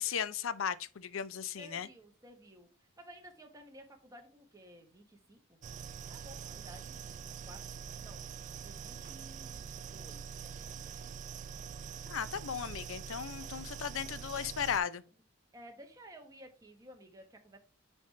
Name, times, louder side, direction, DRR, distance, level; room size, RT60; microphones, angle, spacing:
voice 1, 0.0-1.9 12.1-15.0, left 7 dB, 70° left, 0.5 m, -36 dB
voice 2, 1.6-5.6 6.1-8.2 8.6-11.4 13.4-13.7 15.5-17.6, equal, 15° right, 1.2 m, -55 dB
sound 1, 5.6-14.8, right 7 dB, 35° right, 0.3 m, -44 dB
9.7 x 3.5 x 3.2 m
head